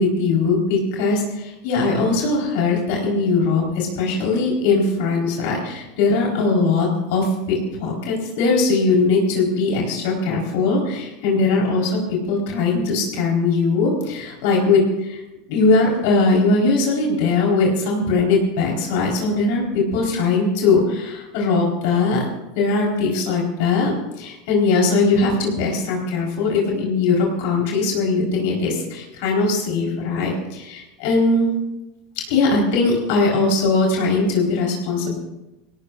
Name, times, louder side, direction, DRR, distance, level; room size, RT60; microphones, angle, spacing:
voice 1, 0.0-15.2 15.5-22.3 22.6-31.5 32.3-35.2, left 3 dB, 65° left, -2 dB, 4.2 m, -20 dB
21.5 x 17.0 x 2.5 m, 0.99 s
hypercardioid pair, 90°, 0 cm